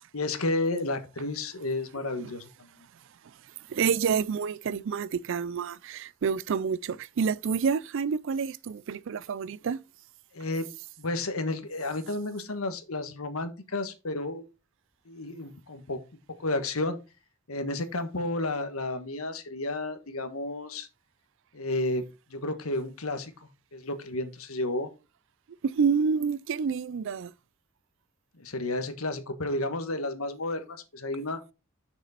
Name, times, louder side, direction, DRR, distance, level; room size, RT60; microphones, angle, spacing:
voice 1, 0.1-2.5 10.3-10.7 11.0-14.4 15.1-16.0 16.4-17.0 17.5-20.9 21.5-22.0 22.3-24.9 28.4-31.4, left 2 dB, 90° left, 1.3 m, -32 dB
voice 2, 3.7-9.8 25.6-27.3, right 6 dB, 60° right, 0.4 m, -28 dB
6.6 x 6.2 x 4.1 m
head